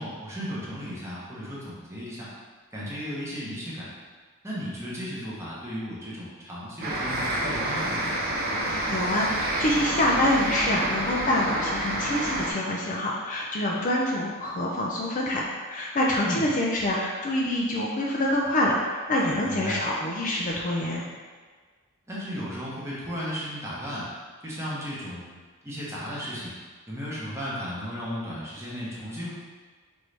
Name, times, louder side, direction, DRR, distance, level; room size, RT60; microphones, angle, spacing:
voice 1, 0.0-2.3 2.7-3.9 4.4-8.1 16.2-16.5 19.4-19.8 22.1-24.1 24.4-25.3 25.6-26.5 26.9-29.3, equal, 10° right, -8 dB, 0.9 m, -35 dB
sound 1, 6.8-12.5, right 1 dB, 45° right, 0.6 m, -28 dB
voice 2, 8.7-21.0, left 1 dB, 35° left, -3 dB, 0.4 m, -26 dB
4.6 x 2.6 x 3.3 m, 1.5 s
head